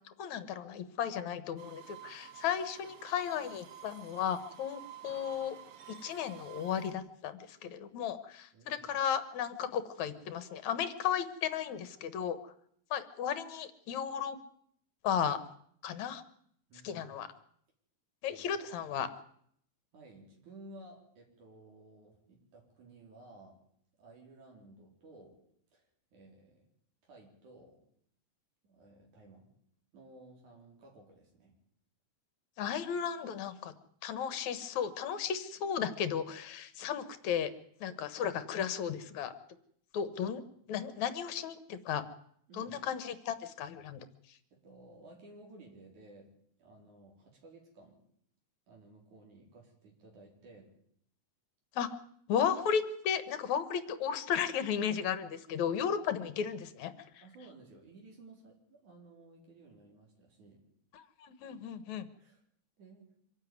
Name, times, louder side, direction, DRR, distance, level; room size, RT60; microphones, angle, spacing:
voice 1, 0.2-5.6 5.9-12.5 12.9-14.4 15.0-15.4 15.8-16.2 16.8-17.3 18.2-19.1 32.6-33.7 34.0-37.5 37.8-39.3 39.9-40.4 40.7-42.0 42.5-44.0 51.8-51.9 52.3-56.9 60.9-62.1, left 8 dB, 75° left, 13 dB, 2.5 m, -34 dB
sound 1, 1.6-6.9, right 10 dB, 55° right, 2.1 m, -51 dB
voice 2, 16.7-17.1 18.3-18.5 19.9-23.6 24.0-25.4 25.7-26.7 27.0-27.8 28.6-29.5 29.9-31.5 40.0-40.1 42.5-42.8 44.5-46.3 46.6-48.0 48.7-50.7 57.2-60.6 62.2-62.4 62.8-63.1, right 2 dB, 80° right, 0 dB, 5.6 m, -55 dB
25.0 x 11.5 x 9.4 m, 0.67 s
omnidirectional pair, 3.4 m